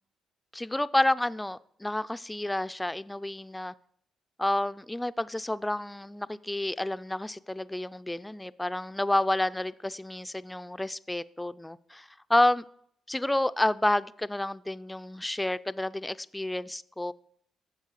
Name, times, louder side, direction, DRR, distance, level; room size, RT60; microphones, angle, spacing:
voice 1, 0.5-3.7 4.4-12.6 13.1-17.1, left 1 dB, 10° left, 15 dB, 0.4 m, -29 dB
10.5 x 7.3 x 6.4 m, 0.68 s
cardioid pair, 90°, 0 cm